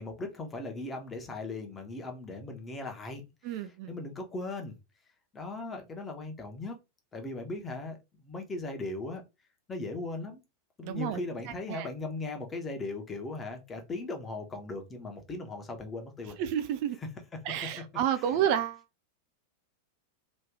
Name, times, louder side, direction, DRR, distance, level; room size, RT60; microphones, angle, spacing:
voice 1, 0.0-3.2 3.5-4.8 5.3-6.8 7.1-9.2 9.7-10.4 10.8-16.4 18.1-18.3, left 2 dB, 20° left, 1.1 m, -38 dB
voice 2, 3.4-3.9 10.8-11.2 11.7-11.9 16.4-17.0 17.5-18.8, right 10 dB, 45° right, 0.4 m, -30 dB
3.1 x 2.7 x 3.6 m
figure-of-eight pair, 90°, 0 cm